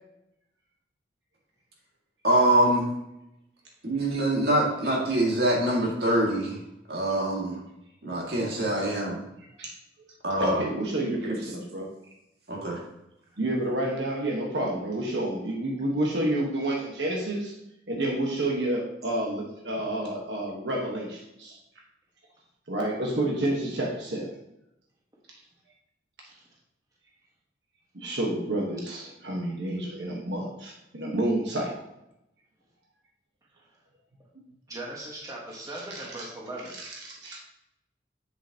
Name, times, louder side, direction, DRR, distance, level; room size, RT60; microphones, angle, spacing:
voice 1, 2.2-2.9 3.8-6.6 6.9-7.6 8.0-9.2 10.2-10.6 11.2-11.3 12.5-12.8, right 1 dB, 55° right, -2 dB, 2.1 m, -24 dB
voice 2, 10.4-11.9 13.4-17.5 17.9-21.6 22.7-24.3 27.9-31.7 35.7-36.3 37.2-37.4, right 1 dB, 75° right, -1 dB, 1.3 m, -29 dB
voice 3, 34.7-36.7, right 1 dB, 20° right, -4 dB, 1.4 m, -39 dB
7.7 x 6.9 x 2.9 m, 0.85 s
head